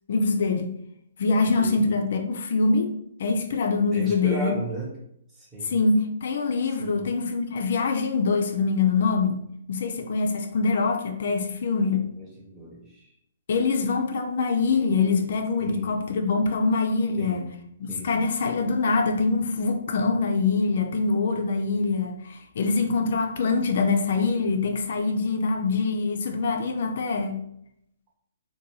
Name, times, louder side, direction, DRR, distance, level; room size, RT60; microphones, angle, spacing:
voice 1, 0.1-0.8 1.2-2.9 3.2-4.5 5.6-12.1 13.5-17.5 17.8-27.4, left 4 dB, 60° left, 4 dB, 0.3 m, -24 dB
voice 2, 1.3-2.0 3.9-4.9 5.4-5.7 6.8-7.1 12.2-13.1 15.6-16.0 17.2-17.6 17.9-18.1, right 1 dB, 20° right, -3 dB, 0.9 m, -36 dB
2.6 x 2.2 x 2.9 m, 0.74 s
hypercardioid pair, 135°, 0 cm